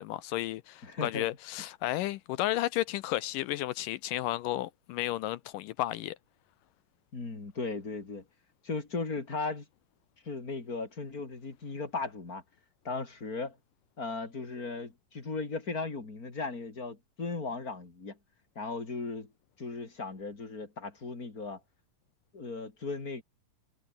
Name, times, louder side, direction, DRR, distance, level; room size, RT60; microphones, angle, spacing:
voice 1, 0.0-6.2, left 15 dB, 75° left, 2.1 m, -33 dB
voice 2, 0.8-1.3 7.1-8.2 8.6-9.7 10.3-12.4 12.9-13.6 14.0-18.2 18.6-19.3 19.6-21.6 22.3-23.2, left 3 dB, 25° left, 3.5 m, -37 dB
omnidirectional pair, 4.2 m